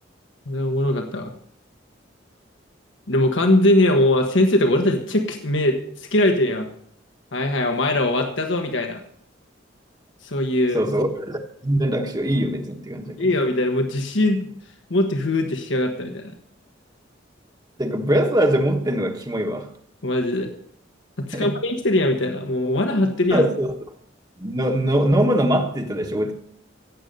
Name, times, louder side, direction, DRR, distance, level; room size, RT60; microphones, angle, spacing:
voice 1, 0.5-1.3 3.1-6.7 7.3-9.0 10.2-10.8 13.2-14.5 14.9-16.2 20.0-20.5 21.2-23.4, left 1 dB, 80° left, 4 dB, 1.4 m, -21 dB
voice 2, 10.7-13.4 17.8-19.7 21.3-21.5 23.3-23.7 24.4-26.3, right 1 dB, 20° right, 3 dB, 1.2 m, -22 dB
16.0 x 7.9 x 5.4 m, 0.66 s
head